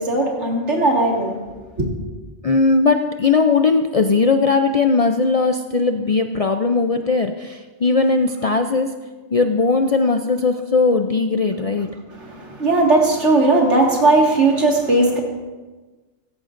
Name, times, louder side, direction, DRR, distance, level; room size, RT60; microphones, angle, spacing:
voice 1, 0.0-1.4 1.8-1.9 12.2-15.2, right 2 dB, 75° right, 0 dB, 2.3 m, -17 dB
voice 2, 2.4-9.0 9.3-11.9, left 4 dB, 50° left, 6 dB, 0.4 m, -18 dB
17.0 x 14.5 x 2.5 m, 1.3 s
omnidirectional pair, 1.2 m